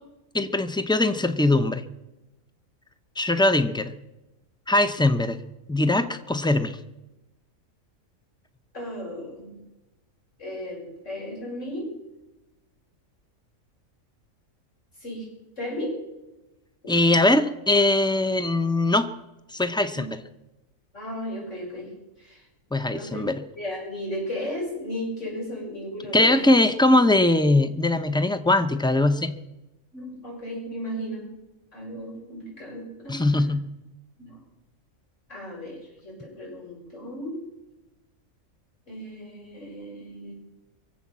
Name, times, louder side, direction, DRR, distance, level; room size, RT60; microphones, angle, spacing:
voice 1, 0.3-1.8 3.2-3.9 4.7-5.4 5.7-6.8 16.9-19.1 19.5-20.2 22.7-23.4 26.1-29.4 33.1-33.7, left 2 dB, 5° left, 10 dB, 0.5 m, -21 dB
voice 2, 8.7-9.6 10.4-11.9 15.0-15.3 15.6-16.0 16.8-16.9 19.9-20.1 20.9-21.9 22.2-22.4 22.9-23.2 23.6-26.4 29.9-31.3 31.7-33.5 34.2-34.4 35.3-37.4 38.9-40.3, equal, 60° left, -3 dB, 6.8 m, -35 dB
23.5 x 8.0 x 7.4 m, 1.0 s
omnidirectional pair, 1.4 m